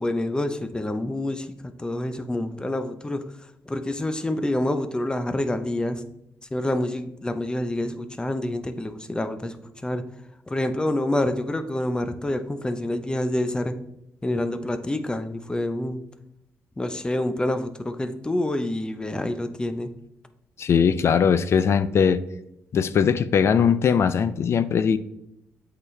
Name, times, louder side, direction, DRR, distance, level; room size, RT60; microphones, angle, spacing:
voice 1, 0.0-1.5 1.8-3.2 3.7-6.0 6.5-10.0 10.5-13.7 14.2-16.0 16.8-19.9, left 1 dB, 15° left, 0.6 m, -27 dB
voice 2, 20.6-22.3 22.7-25.0, left 7 dB, 55° left, 0.4 m, -20 dB
8.1 x 4.0 x 3.2 m
cardioid pair, 75°, 5 cm